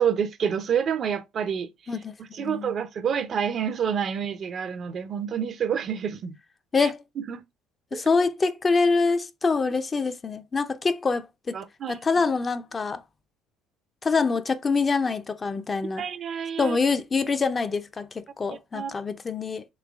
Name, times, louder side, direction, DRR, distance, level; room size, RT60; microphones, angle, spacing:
voice 1, 0.0-1.9 2.2-6.4 6.8-6.9 7.3-7.4 7.9-8.0 11.5-12.0 16.0-16.8 18.5-18.9, right 7 dB, 50° right, 0.4 m, -28 dB
voice 2, 1.9-2.8 6.7-7.0 7.9-11.6 11.9-13.0 14.0-16.0 16.6-19.6, left 4 dB, 30° left, 0.4 m, -25 dB
3.1 x 3.0 x 2.4 m
supercardioid pair, 75°, 0 cm